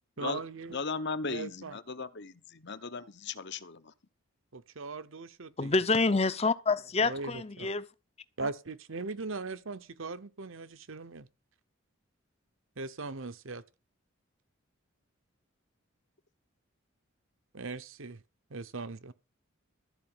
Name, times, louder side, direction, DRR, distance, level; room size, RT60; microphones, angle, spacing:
voice 1, 0.2-0.8 1.3-1.8 4.5-5.8 7.0-7.7 8.4-11.3 12.8-13.6 17.5-18.2 18.5-19.1, right 3 dB, 70° right, 0.9 m, -39 dB
voice 2, 0.7-3.9, left 4 dB, 55° left, 1.0 m, -37 dB
voice 3, 5.6-7.8, left 3 dB, 30° left, 0.7 m, -27 dB
14.0 x 4.9 x 8.8 m
head